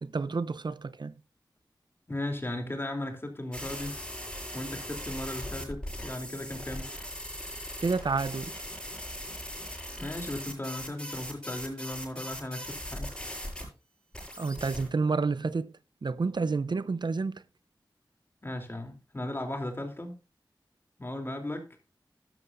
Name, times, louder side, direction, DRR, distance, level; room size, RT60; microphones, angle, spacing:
voice 1, 0.0-1.1 7.8-8.6 14.4-15.7 16.0-17.4, right 4 dB, 65° right, 0.6 m, -29 dB
voice 2, 2.1-4.0 4.5-6.9 10.0-13.1 18.4-20.1 21.0-21.6, left 1 dB, 30° left, 3.2 m, -36 dB
sound 1, 3.5-13.6 14.1-14.9, equal, 10° left, 8.0 m, -39 dB
12.5 x 12.0 x 2.6 m
wide cardioid pair, 80°, 8 cm